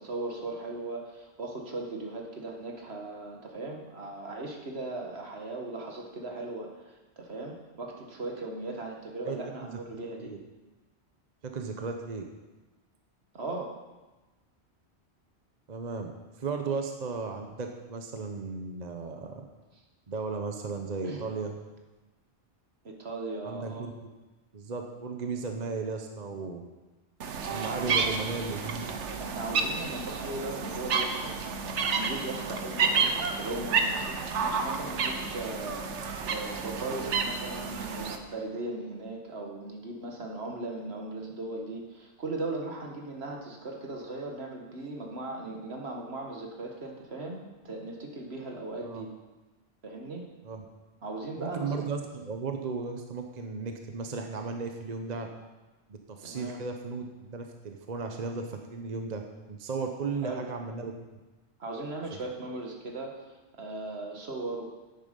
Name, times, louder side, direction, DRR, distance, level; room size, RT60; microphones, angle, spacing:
voice 1, 0.0-10.3 13.3-13.7 21.0-21.2 22.8-23.9 27.7-28.1 29.2-31.3 31.7-49.1 49.8-50.3 51.0-51.9 56.2-56.6 60.2-60.4 61.6-64.6, right 2 dB, 65° right, 1 dB, 1.8 m, -38 dB
voice 2, 9.2-9.7 10.2-10.4 11.4-12.2 15.7-16.1 16.4-19.4 20.1-21.6 23.4-23.9 24.5-26.6 27.5-28.8 48.8-49.0 50.4-50.6 51.4-55.3 55.9-59.2 59.5-60.9, right 4 dB, 40° right, 4 dB, 0.9 m, -35 dB
sound 1, 27.2-38.2, right 5 dB, 90° right, 1.2 m, -30 dB
10.5 x 9.4 x 5.3 m, 1.2 s
omnidirectional pair, 1.2 m